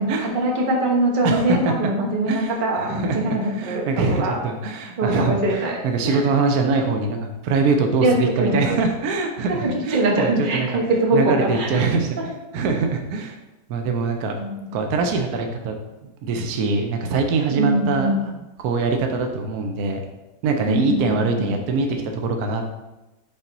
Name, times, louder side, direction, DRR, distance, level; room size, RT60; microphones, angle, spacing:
voice 1, 0.0-4.4 5.0-5.8 6.0-6.4 8.0-8.8 9.5-11.8 12.2-12.3 14.3-14.7 17.5-18.3 20.7-21.5, right 1 dB, 35° right, 0 dB, 0.9 m, -23 dB
voice 2, 1.2-1.6 2.3-10.7 11.1-12.2 12.5-13.4 13.7-14.3 14.7-15.7 16.2-18.1 18.6-20.0 20.4-22.7, right 4 dB, 70° right, 4 dB, 1.0 m, -23 dB
6.0 x 4.0 x 3.9 m, 1.0 s
omnidirectional pair, 1.9 m